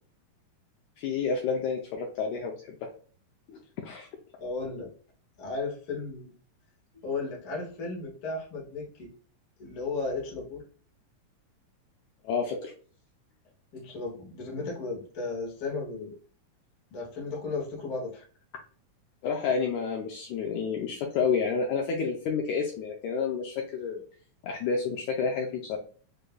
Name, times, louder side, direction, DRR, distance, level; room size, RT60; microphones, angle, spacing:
voice 1, 1.0-2.5 2.8-2.9 3.5-4.1 12.2-12.7 19.2-24.0 24.4-25.8, left 5 dB, 80° left, 0 dB, 1.7 m, -30 dB
voice 2, 4.4-4.9 5.4-6.3 7.0-9.1 9.6-10.6 13.7-16.2 16.9-18.3, left 3 dB, 40° left, -2 dB, 1.3 m, -35 dB
6.5 x 2.6 x 2.2 m, 0.42 s
omnidirectional pair, 4.0 m